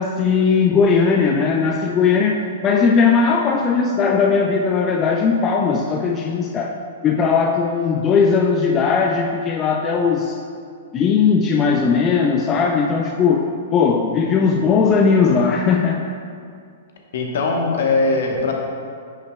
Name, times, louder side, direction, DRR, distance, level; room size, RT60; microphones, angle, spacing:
voice 1, 0.0-6.7 7.0-10.4 10.9-16.1, left 5 dB, 25° left, 2 dB, 0.4 m, -18 dB
voice 2, 17.1-18.5, left 3 dB, 65° left, 1 dB, 1.0 m, -20 dB
9.6 x 5.6 x 2.2 m, 2.2 s
figure-of-eight pair, 110°, 0 cm